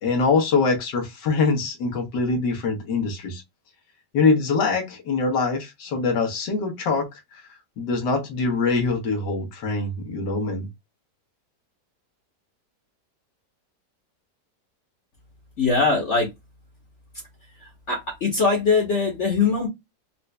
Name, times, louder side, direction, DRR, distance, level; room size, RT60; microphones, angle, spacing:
voice 1, 0.0-3.4 4.1-7.1 7.8-10.7, left 4 dB, 80° left, 1.7 m, -23 dB
voice 2, 15.6-16.3 17.9-19.7, left 4 dB, 45° left, 1.2 m, -21 dB
4.3 x 2.5 x 2.2 m
omnidirectional pair, 1.9 m